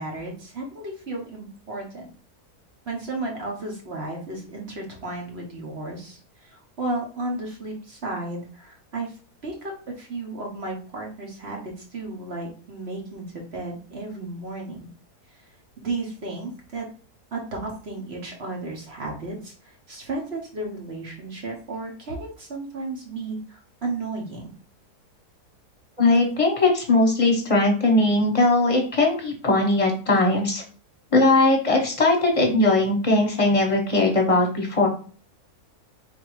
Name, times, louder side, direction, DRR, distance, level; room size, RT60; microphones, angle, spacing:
voice 1, 0.0-2.1 2.9-14.9 15.3-16.9 17.3-24.5, right 2 dB, 45° right, 0 dB, 1.1 m, -34 dB
voice 2, 26.0-30.6 31.1-34.9, left 2 dB, 25° left, 0 dB, 1.1 m, -19 dB
3.9 x 2.9 x 4.7 m, 0.40 s
omnidirectional pair, 1.7 m